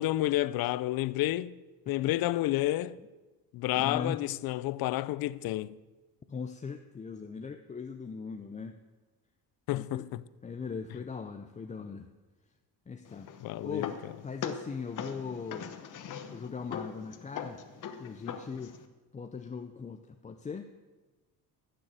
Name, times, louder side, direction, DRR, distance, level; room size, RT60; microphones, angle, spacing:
voice 1, 0.0-1.6 1.9-3.0 3.5-5.8 9.7-10.2 13.4-14.1, left 15 dB, 65° left, 0.5 m, -30 dB
voice 2, 3.8-4.2 6.3-8.8 9.7-12.1 12.9-13.3 13.6-13.9 14.2-15.8 16.3-17.6 18.0-18.8 19.1-20.7, left 5 dB, 20° left, 0.5 m, -39 dB
sound 1, 13.1-18.9, left 7 dB, 50° left, 1.1 m, -41 dB
15.0 x 6.8 x 7.5 m
cardioid pair, 115°, 39 cm